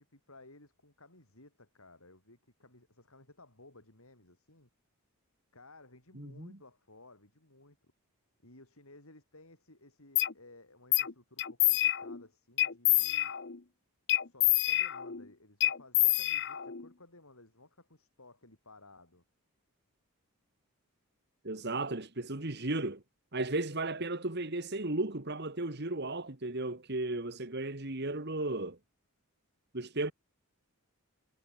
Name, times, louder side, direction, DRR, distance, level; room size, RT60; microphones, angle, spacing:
voice 1, 0.0-4.7 5.5-7.9 8.4-13.3 14.2-19.2, left 2 dB, 70° left, 7.5 m, -57 dB
voice 2, 6.2-6.6 21.4-23.0 23.3-28.8 29.7-30.1, right 2 dB, 50° right, 2.0 m, -35 dB
sound 1, 10.2-10.3 10.9-11.1 11.4-12.2 12.6-13.6 14.1-15.2 15.6-16.8, left 16 dB, 50° left, 1.0 m, -27 dB
head